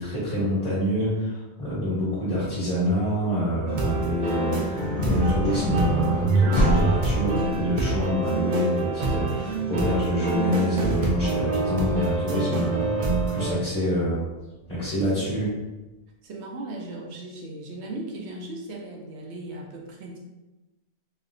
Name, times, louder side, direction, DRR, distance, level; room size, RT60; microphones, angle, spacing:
voice 1, 0.0-4.6 5.0-14.2 14.7-15.5, equal, 35° left, -10 dB, 1.2 m, -26 dB
sound 1, 3.7-13.4, left 1 dB, 70° left, 1.2 m, -30 dB
sound 2, 3.7-13.5, right 3 dB, 55° right, 0.6 m, -26 dB
voice 2, 15.0-15.4 16.2-20.2, right 2 dB, 80° right, -1 dB, 0.9 m, -37 dB
3.2 x 2.8 x 2.5 m, 1.1 s
omnidirectional pair, 1.1 m